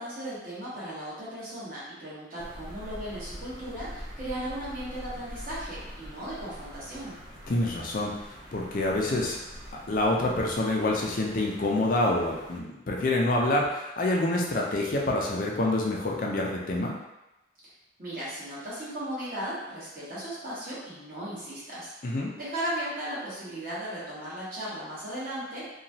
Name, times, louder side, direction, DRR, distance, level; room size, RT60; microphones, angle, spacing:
voice 1, 0.0-7.2 17.6-17.7 18.0-25.7, right 1 dB, 45° right, -10 dB, 1.2 m, -36 dB
sound 1, 2.4-12.6, equal, 20° right, 0.5 m, -44 dB
voice 2, 7.5-8.1 8.5-9.4 9.9-16.9 22.0-22.3, left 2 dB, 45° left, -1 dB, 0.4 m, -27 dB
2.9 x 2.3 x 2.7 m, 0.98 s
head